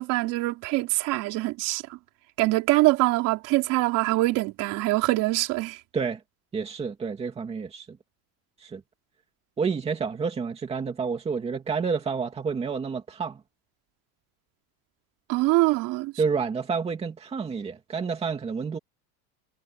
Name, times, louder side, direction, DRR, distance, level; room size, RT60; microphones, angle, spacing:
voice 1, 0.0-2.0 2.4-5.8 15.3-16.1, right 20 dB, 45° right, 3.7 m, -24 dB
voice 2, 6.5-8.0 8.6-8.8 9.6-13.4 16.2-18.8, right 5 dB, 15° right, 2.3 m, -29 dB
cardioid pair, 180°, 45 cm